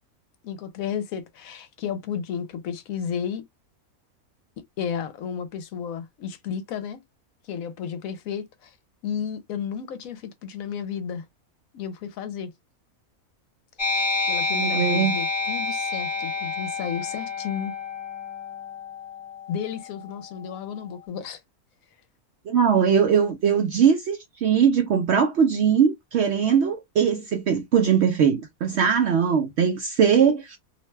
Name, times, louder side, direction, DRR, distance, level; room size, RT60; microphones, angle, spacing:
voice 1, 0.4-3.5 4.8-7.0 7.5-8.7 9.0-11.2 11.7-12.5 14.3-17.7 19.5-21.4, left 7 dB, 75° left, 1.0 m, -32 dB
sound 1, 13.8-20.9, left 3 dB, 30° left, 0.5 m, -29 dB
voice 2, 14.5-15.2 22.5-30.6, right 7 dB, 70° right, 0.6 m, -21 dB
2.7 x 2.2 x 3.1 m
omnidirectional pair, 1.5 m